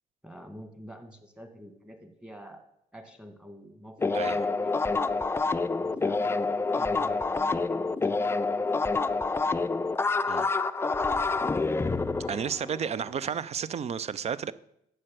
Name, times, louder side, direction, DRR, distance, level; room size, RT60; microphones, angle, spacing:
voice 1, 0.2-2.6 2.9-4.9 5.8-6.5 6.7-8.1, equal, 5° right, 1.7 m, -46 dB
sound 1, 4.0-13.2, left 3 dB, 15° left, 0.5 m, -27 dB
voice 2, 4.1-4.5 10.3-10.5 12.3-14.5, right 7 dB, 45° right, 0.5 m, -32 dB
7.7 x 6.4 x 7.6 m
cardioid pair, 85°, 16 cm